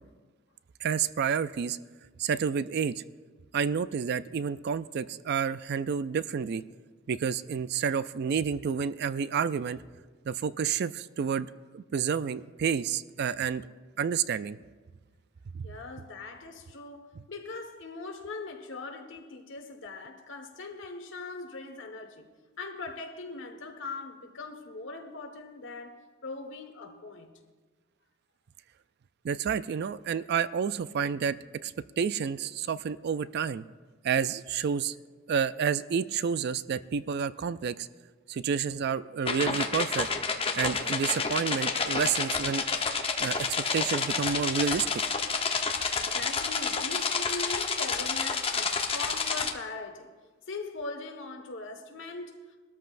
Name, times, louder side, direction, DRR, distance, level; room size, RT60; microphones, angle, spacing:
voice 1, 0.8-1.8 2.2-3.0 3.5-6.6 7.1-9.8 10.3-11.5 11.7-13.7 14.0-14.6 15.5-15.7 29.2-31.4 31.6-33.6 34.0-35.0 35.3-37.9 38.3-40.1 40.6-42.6 43.2-45.0, right 7 dB, 55° right, 0.4 m, -29 dB
voice 2, 15.6-22.3 22.6-26.0 26.2-27.4 45.9-50.1 50.5-52.6, left 3 dB, 65° left, 1.4 m, -40 dB
sound 1, 39.3-49.5, left 5 dB, 30° left, 0.9 m, -29 dB
22.0 x 13.0 x 2.5 m
head